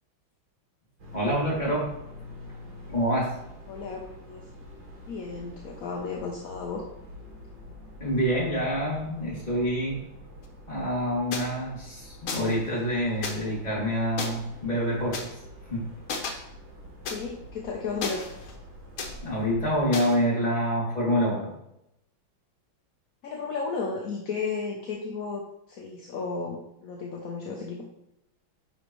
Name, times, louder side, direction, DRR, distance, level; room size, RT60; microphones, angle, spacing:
sound 1, 1.0-19.9, left 1 dB, 60° right, 2.5 m, -46 dB
voice 1, 1.1-1.9 2.9-3.3 8.0-10.0 10.7-15.3 15.7-15.9 16.2-16.4 19.2-21.5, equal, 20° left, -7 dB, 2.9 m, -27 dB
voice 2, 3.7-4.4 5.1-6.8 17.1-18.2 23.2-25.4 25.7-27.9, left 4 dB, 55° left, 0 dB, 1.0 m, -33 dB
sound 2, 11.3-11.4 12.3-12.6 13.2-13.3 14.2-14.3 15.1-15.2 16.1-16.3 17.1-17.2 18.0-18.5 19.0-19.1 19.9-20.1, left 4 dB, 80° left, 1.9 m, -32 dB
10.5 x 4.7 x 3.1 m, 0.84 s
omnidirectional pair, 2.3 m